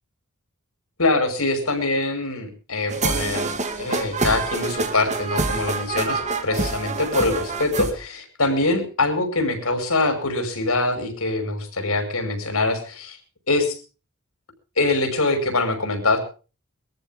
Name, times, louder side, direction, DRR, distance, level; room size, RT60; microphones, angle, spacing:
voice 1, 1.0-3.5 3.8-13.2 13.5-13.8 14.8-16.2, left 2 dB, 70° left, 7 dB, 5.5 m, -23 dB
sound 1, 2.9-7.9, right 3 dB, 35° right, 2.2 m, -26 dB
22.5 x 14.5 x 3.7 m, 0.36 s
head